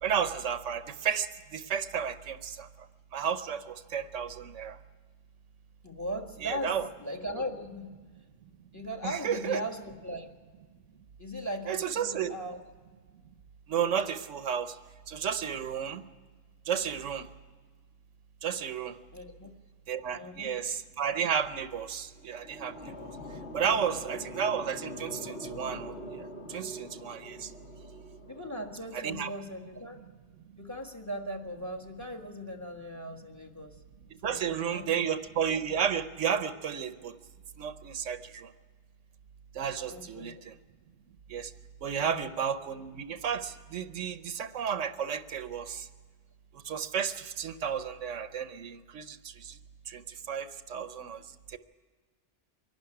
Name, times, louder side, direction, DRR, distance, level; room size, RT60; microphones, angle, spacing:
voice 1, 0.0-2.7 3.1-4.8 6.4-6.9 9.0-9.6 11.7-12.3 13.7-14.8 15.1-16.0 16.7-17.3 18.4-19.0 19.9-22.9 23.5-27.5 28.9-29.3 34.2-37.1 37.6-38.5 39.5-40.5 41.3-41.5 41.8-45.9 46.6-49.6 49.9-51.2 51.5-51.6, right 7 dB, 80° right, 12 dB, 1.1 m, -32 dB
voice 2, 5.8-8.0 8.7-10.3 11.2-12.6 19.1-19.5 20.1-20.6 23.7-23.8 28.3-30.0 30.6-33.8 34.2-35.0 38.4-38.5 39.9-40.4 41.9-42.3, equal, 15° left, 4 dB, 1.5 m, -39 dB
sound 1, 22.0-29.2, equal, 60° left, 2.1 m, -44 dB
23.5 x 11.5 x 9.9 m, 1.4 s
omnidirectional pair, 1.3 m